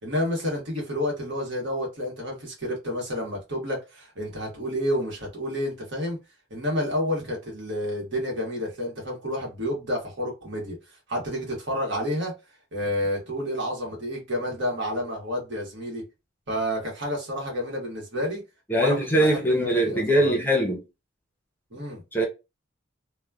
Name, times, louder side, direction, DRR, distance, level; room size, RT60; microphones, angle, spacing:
voice 1, 0.0-6.2 6.5-10.8 11.1-12.3 12.7-16.0 16.5-18.4 18.8-20.4 21.7-22.0, equal, 60° right, 1.3 m, -30 dB
voice 2, 18.7-20.8 22.1-22.2, right 1 dB, 10° left, 0.7 m, -22 dB
3.0 x 2.2 x 2.3 m
head